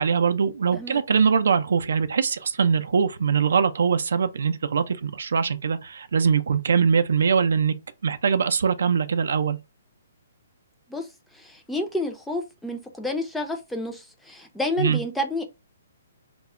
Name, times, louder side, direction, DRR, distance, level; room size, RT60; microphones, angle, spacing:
voice 1, 0.0-7.7 8.0-9.6 14.8-15.0, right 6 dB, 75° right, 0.4 m, -22 dB
voice 2, 11.3-15.4, left 1 dB, 5° left, 0.5 m, -30 dB
2.1 x 2.0 x 3.5 m
hypercardioid pair, 140°, 0 cm